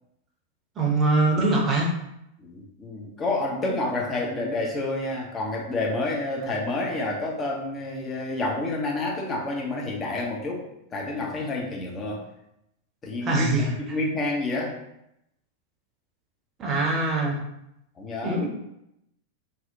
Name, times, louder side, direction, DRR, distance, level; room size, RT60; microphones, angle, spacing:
voice 1, 0.8-1.9 13.2-13.7 16.6-17.4 18.2-18.5, right 2 dB, 25° right, -2 dB, 0.7 m, -23 dB
voice 2, 2.4-10.6 10.9-12.3 13.0-13.4 13.8-14.8 18.0-18.4, left 2 dB, 25° left, -1 dB, 0.6 m, -29 dB
2.7 x 2.0 x 2.7 m, 0.81 s
figure-of-eight pair, 90°, 0 cm